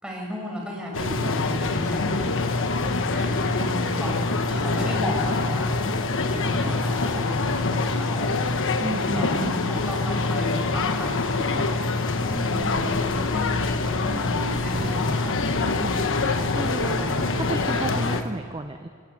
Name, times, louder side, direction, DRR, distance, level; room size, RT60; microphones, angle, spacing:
voice 1, 0.0-5.8 6.3-8.8 9.1-11.9 13.1-15.4 16.8-17.5, equal, 5° right, -2 dB, 6.0 m, -34 dB
sound 1, 0.9-18.2, left 3 dB, 60° left, 1.3 m, -25 dB
voice 2, 3.6-4.0 8.8-9.8 12.3-13.0 15.6-18.9, right 1 dB, 20° right, 6 dB, 0.8 m, -33 dB
sound 2, 12.0-18.3, left 1 dB, 10° left, 2.3 m, -42 dB
27.5 x 13.5 x 9.0 m, 2.4 s
head